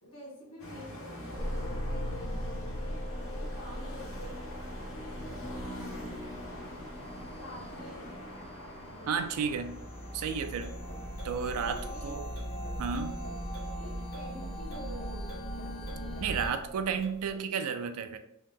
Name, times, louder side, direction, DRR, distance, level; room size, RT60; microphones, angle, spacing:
voice 1, 0.0-3.0 3.3-4.5 4.9-6.1 7.3-8.5 8.9-9.7 10.8-11.0 11.5-12.1 13.8-16.3, left 1 dB, 85° left, -4 dB, 1.3 m, -49 dB
sound 1, 0.6-17.1, equal, 65° left, 0.8 m, -45 dB
sound 2, 1.4-16.5, equal, 25° left, 0.4 m, -39 dB
voice 2, 9.1-9.8 10.1-10.8 11.2-12.2 12.8-13.2 16.2-18.2, right 6 dB, 80° right, 9 dB, 0.4 m, -32 dB
sound 3, 10.6-17.4, right 1 dB, 45° left, 1.1 m, -47 dB
2.8 x 2.1 x 3.4 m, 0.77 s
head